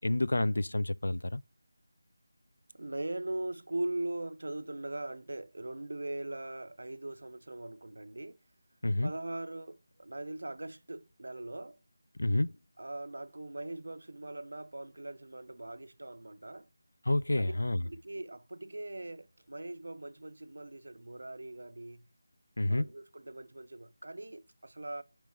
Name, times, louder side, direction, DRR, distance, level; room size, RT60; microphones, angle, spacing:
voice 1, 0.0-1.4 8.8-9.1 12.2-12.5 17.1-17.8 22.6-22.9, left 2 dB, 80° left, 0.3 m, -29 dB
voice 2, 2.7-8.4 9.0-11.8 12.8-16.7 17.4-17.5 17.8-22.1 22.7-25.0, right 2 dB, 75° right, 0.6 m, -40 dB
5.2 x 4.5 x 5.4 m
figure-of-eight pair, 175°, 0 cm